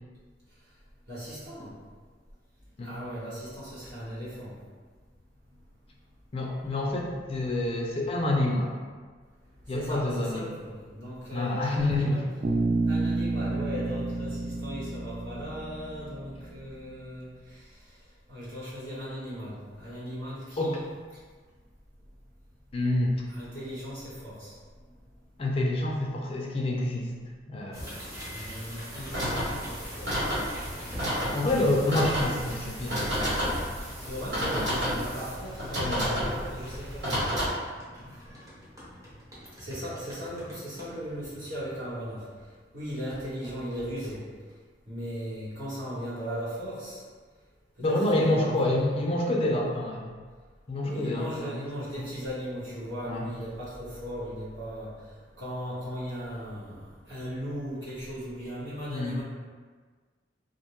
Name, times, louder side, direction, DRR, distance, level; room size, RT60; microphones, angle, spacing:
voice 1, 1.1-1.8 2.8-4.5 9.7-12.2 12.9-17.7 18.3-20.9 23.3-24.6 28.3-30.3 31.4-32.0 34.1-37.2 39.6-42.3 42.7-44.3 44.9-47.0 47.8-48.7 50.8-55.0 55.4-59.2, equal, 90° right, -11 dB, 1.3 m, -37 dB
voice 2, 6.3-8.7 9.7-10.5 11.3-12.2 20.6-20.8 22.7-23.1 25.4-27.1 27.5-28.0 31.3-33.1 35.8-36.3 47.8-50.2 50.7-51.5 53.1-53.2 58.9-59.2, left 1 dB, 30° left, -1 dB, 0.4 m, -27 dB
Bass guitar, 12.4-16.5, right 2 dB, 45° right, 0.3 m, -30 dB
sound 1, 27.7-42.6 43.1-44.5, equal, 20° right, 0.8 m, -43 dB
sound 2, 29.1-37.5, equal, 75° right, 1.2 m, -31 dB
2.5 x 2.2 x 2.9 m, 1.5 s
head